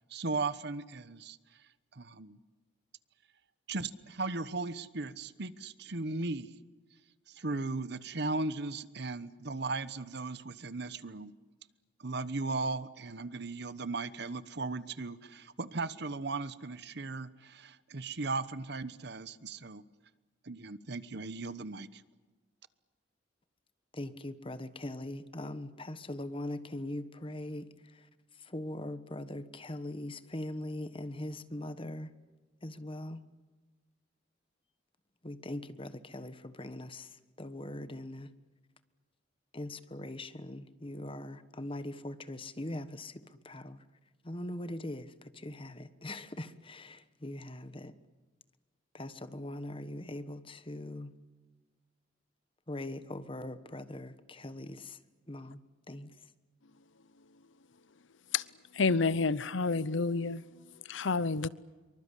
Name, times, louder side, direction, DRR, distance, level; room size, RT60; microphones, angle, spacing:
voice 1, 0.1-1.4 1.9-2.4 3.7-6.5 7.3-11.3 12.0-19.8 20.4-22.0, right 3 dB, 60° right, 1.1 m, -37 dB
voice 2, 23.9-28.1 28.4-32.1 32.6-33.2 35.2-38.3 39.5-43.8 44.2-47.9 48.9-51.1 52.7-55.0 55.3-55.6 55.9-56.1, left 1 dB, 30° left, 1.3 m, -41 dB
voice 3, 58.7-60.4 60.9-61.5, left 4 dB, 80° left, 0.8 m, -29 dB
25.0 x 24.0 x 8.3 m
head